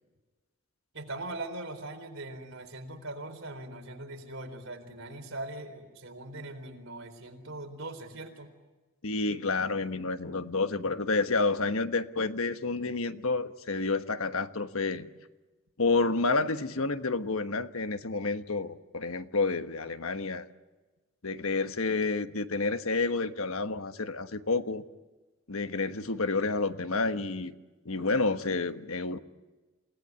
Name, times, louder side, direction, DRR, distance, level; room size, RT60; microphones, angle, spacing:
voice 1, 0.9-8.5, right 2 dB, 65° right, 6 dB, 4.1 m, -41 dB
voice 2, 9.0-15.1 15.8-20.5 21.2-24.8 25.5-27.5 27.8-29.2, left 3 dB, 75° left, 9 dB, 1.2 m, -29 dB
28.5 x 18.0 x 9.5 m, 1.2 s
head